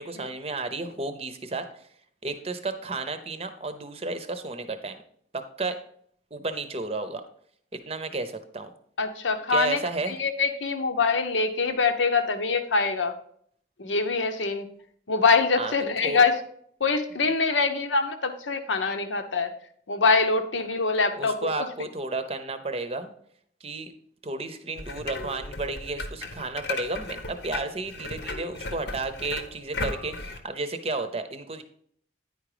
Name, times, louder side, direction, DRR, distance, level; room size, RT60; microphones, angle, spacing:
voice 1, 0.0-1.8 2.2-5.0 5.3-5.8 6.3-7.2 7.7-8.7 9.5-10.2 15.6-15.7 16.0-16.2 21.2-23.1 23.6-23.9 24.2-31.6, right 3 dB, 30° right, 9 dB, 0.7 m, -32 dB
voice 2, 9.0-9.8 10.1-13.2 13.8-14.7 15.1-16.4 16.8-19.5 19.9-21.5, left 4 dB, 85° left, 8 dB, 1.0 m, -24 dB
sound 1, 24.8-30.4, left 3 dB, 60° left, 0.9 m, -36 dB
9.8 x 4.9 x 4.9 m, 0.64 s
head